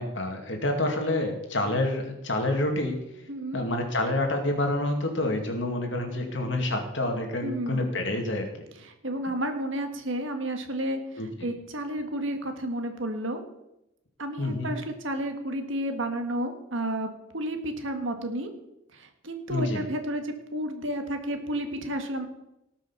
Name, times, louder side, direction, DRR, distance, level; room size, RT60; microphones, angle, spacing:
voice 1, 0.0-3.0 3.5-8.5 11.2-11.5 14.4-14.7 19.5-19.8, left 1 dB, 60° left, 3 dB, 2.2 m, -28 dB
voice 2, 3.3-3.6 7.4-7.9 8.8-11.0 11.4-13.4 14.2-18.5 18.9-22.3, right 1 dB, 70° right, 6 dB, 1.7 m, -31 dB
18.5 x 6.2 x 5.6 m, 0.88 s
head